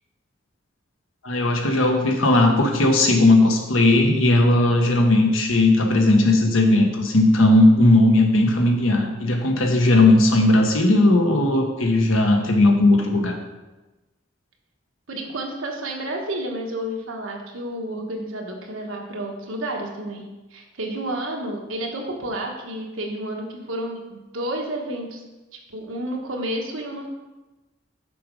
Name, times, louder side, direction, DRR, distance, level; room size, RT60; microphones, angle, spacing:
voice 1, 1.2-13.4, left 2 dB, 85° left, 3 dB, 1.2 m, -17 dB
voice 2, 15.1-25.2 25.7-27.1, right 1 dB, 90° right, 1 dB, 1.3 m, -30 dB
6.8 x 4.9 x 5.3 m, 1.1 s
head